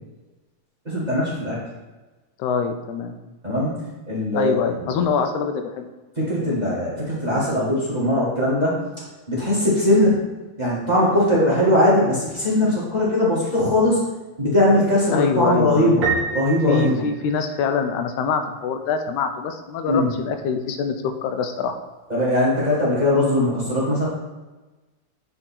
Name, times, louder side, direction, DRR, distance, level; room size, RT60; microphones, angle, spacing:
voice 1, 0.8-1.6 3.4-3.7 4.1-5.0 6.1-8.8 9.3-10.1 10.6-14.0 14.4-17.0 19.9-20.1 22.1-24.1, left 1 dB, 20° right, -7 dB, 1.5 m, -20 dB
voice 2, 2.4-3.1 4.3-5.9 15.1-16.0 16.7-21.0 21.2-21.8, left 6 dB, 90° left, 6 dB, 2.1 m, -24 dB
Piano, 16.0-17.8, right 5 dB, 70° right, 2.3 m, -28 dB
8.8 x 4.5 x 4.3 m, 1.2 s
omnidirectional pair, 3.3 m